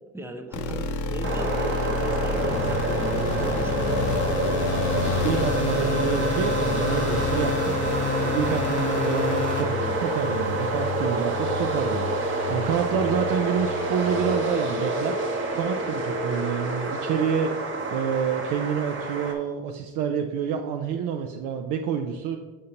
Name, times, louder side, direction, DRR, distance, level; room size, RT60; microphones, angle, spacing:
voice 1, 0.1-3.9 9.3-10.0, right 1 dB, 5° right, 4 dB, 0.5 m, -38 dB
sound 1, 0.5-9.6, left 5 dB, 55° left, 0.7 m, -28 dB
sound 2, 1.2-19.3, right 2 dB, 35° right, 0.9 m, -28 dB
voice 2, 4.7-7.7 8.2-22.4, right 7 dB, 65° right, 3 dB, 0.5 m, -28 dB
sound 3, 7.0-14.7, left 7 dB, 20° left, 0.9 m, -36 dB
6.5 x 5.5 x 2.8 m, 1.4 s
cardioid pair, 120°, 36 cm